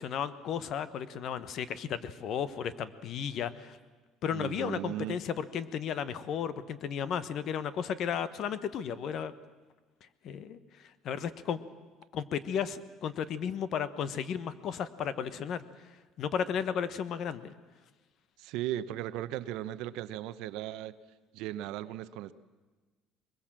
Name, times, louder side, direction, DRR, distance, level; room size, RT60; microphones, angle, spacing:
voice 1, 0.0-3.8 4.2-9.3 10.2-10.6 11.0-11.6 12.1-15.6 16.2-17.5, left 8 dB, 50° left, 14 dB, 1.1 m, -34 dB
voice 2, 4.3-5.2 18.4-21.0 21.3-22.3, right 13 dB, 75° right, 14 dB, 0.8 m, -37 dB
22.0 x 21.0 x 7.4 m, 1.3 s
cardioid pair, 140°, 0 cm